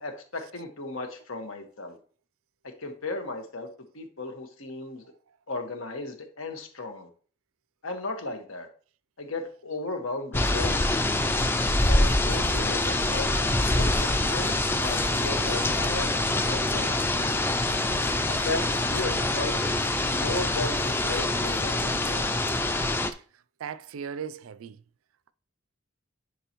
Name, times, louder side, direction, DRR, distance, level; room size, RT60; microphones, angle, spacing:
voice 1, 0.0-2.0 2.6-3.7 3.9-5.0 5.5-7.1 7.8-8.7 9.2-11.3 11.8-16.2 16.4-17.3 18.3-19.6 20.0-22.3, left 2 dB, 80° left, 1.4 m, -36 dB
sound 1, 10.3-23.1, left 2 dB, 10° left, 0.3 m, -25 dB
voice 2, 23.6-24.8, right 7 dB, 85° right, 0.4 m, -37 dB
10.0 x 4.8 x 3.0 m
head